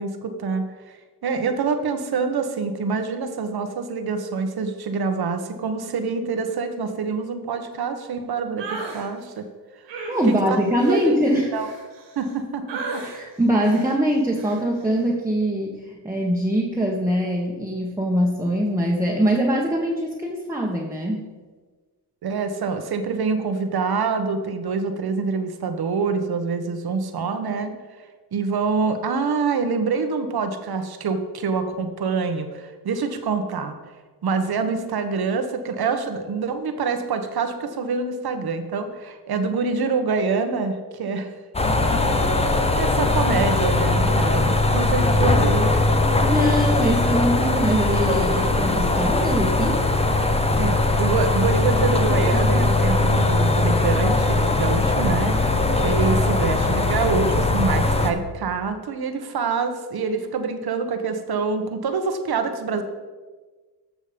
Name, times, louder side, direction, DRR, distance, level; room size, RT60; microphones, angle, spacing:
voice 1, 0.0-9.5 9.9-10.0 10.2-10.6 10.8-11.1 11.5-11.7 12.1-13.0 22.2-27.7 28.3-33.8 34.2-41.3 42.4-45.7 50.6-62.8, right 4 dB, 60° right, 8 dB, 1.4 m, -26 dB
sound 1, 8.6-9.1 9.9-12.3 12.7-13.2 13.6-14.0 14.4-14.6, right 3 dB, 90° right, 3.3 m, -35 dB
voice 2, 10.1-11.5 13.0-21.3 46.2-49.8, equal, 5° right, -2 dB, 1.5 m, -22 dB
sound 2, 41.5-58.1, left 2 dB, 15° left, 1.1 m, -20 dB
14.0 x 6.4 x 5.2 m, 1.3 s
cardioid pair, 95°, 43 cm